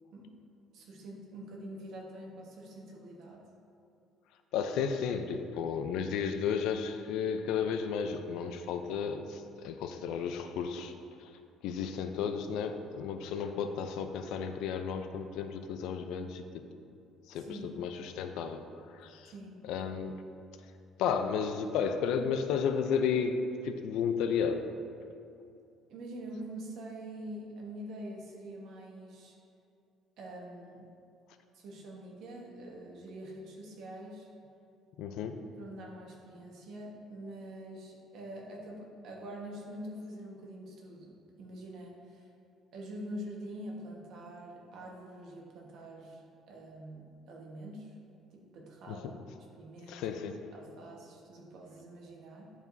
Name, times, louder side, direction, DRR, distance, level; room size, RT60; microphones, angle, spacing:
voice 1, 0.7-3.4 17.3-17.8 19.3-19.6 25.9-29.4 30.2-30.9 31.5-34.3 35.5-41.1 41.4-42.3 42.7-46.2 46.5-47.9 48.3-49.1 49.6-50.1 50.5-52.5, right 1 dB, 60° right, -1 dB, 1.3 m, -45 dB
voice 2, 4.5-10.9 11.6-16.7 17.3-18.6 19.0-19.3 19.7-20.1 21.0-24.6 35.0-35.4 48.9-49.1 49.9-50.4, left 6 dB, 75° left, 7 dB, 0.5 m, -33 dB
10.5 x 4.8 x 2.7 m, 2.5 s
cardioid pair, 150°, 0 cm